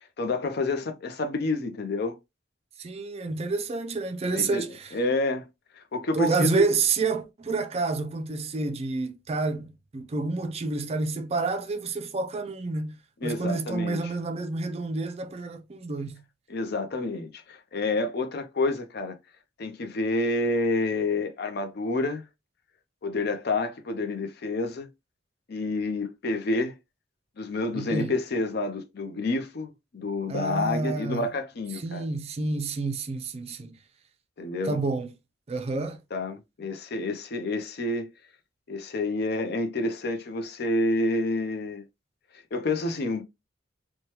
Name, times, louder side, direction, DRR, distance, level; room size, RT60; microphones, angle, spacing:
voice 1, 0.2-2.2 4.3-4.6 4.9-5.5 5.8-6.6 13.2-14.0 16.5-19.2 19.6-22.2 23.0-24.9 25.5-26.8 27.4-32.1 34.4-34.8 36.1-38.1 38.7-41.8 42.5-43.2, left 2 dB, 60° left, 0.5 m, -28 dB
voice 2, 2.8-4.9 6.1-13.0 13.2-16.2 27.7-28.1 30.3-31.3 31.8-33.8 34.6-35.1 35.5-36.0, right 3 dB, 35° right, 0.4 m, -29 dB
3.1 x 2.2 x 2.8 m
head